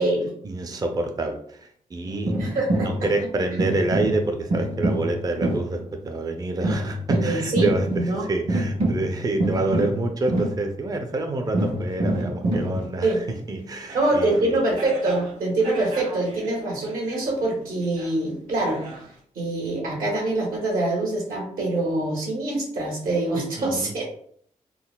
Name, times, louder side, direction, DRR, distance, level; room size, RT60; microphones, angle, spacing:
voice 1, 0.4-2.3 2.8-13.2 13.5-14.6 23.6-24.0, right 2 dB, 25° right, 4 dB, 0.4 m, -27 dB
sound 1, 2.1-3.2 3.6-5.9 6.6-11.1 11.5-14.4 14.8-15.3 15.6-17.5 17.8-18.1 18.5-19.0, right 1 dB, 60° right, 1.2 m, -27 dB
voice 2, 2.4-2.9 7.2-8.2 13.0-13.2 13.9-18.8 19.3-24.0, right 2 dB, 85° right, -2 dB, 1.2 m, -24 dB
3.8 x 2.0 x 2.2 m, 0.62 s
cardioid pair, 60°, 14 cm